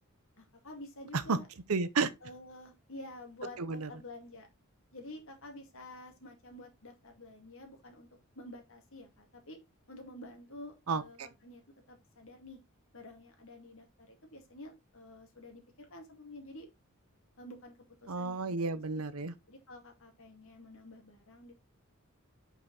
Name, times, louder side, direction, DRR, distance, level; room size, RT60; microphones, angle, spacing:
voice 1, 0.4-1.5 2.2-4.5 4.9-8.1 8.4-9.6 9.9-11.6 11.9-12.6 12.9-16.7 17.4-18.6 19.2-21.5, left 1 dB, 65° left, 2.2 m, -49 dB
voice 2, 1.7-2.1 3.6-3.9 10.9-11.3 18.1-19.3, right 4 dB, 80° right, 0.8 m, -32 dB
5.6 x 5.1 x 4.1 m
head